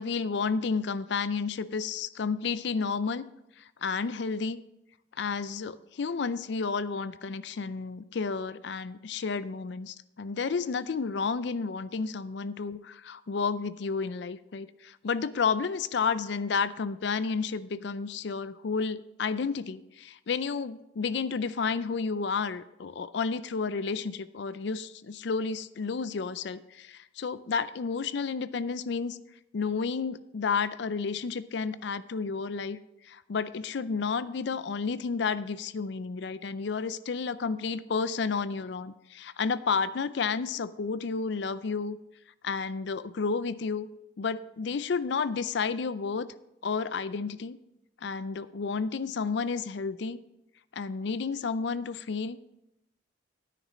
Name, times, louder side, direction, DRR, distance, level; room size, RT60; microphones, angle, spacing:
voice 1, 0.0-3.2 3.6-4.6 5.2-29.2 29.5-32.8 33.0-42.0 42.4-43.9 44.2-46.3 46.6-47.6 48.0-50.2 50.7-52.4, left 5 dB, 60° left, 16 dB, 0.4 m, -31 dB
10.0 x 9.2 x 4.2 m, 0.87 s
head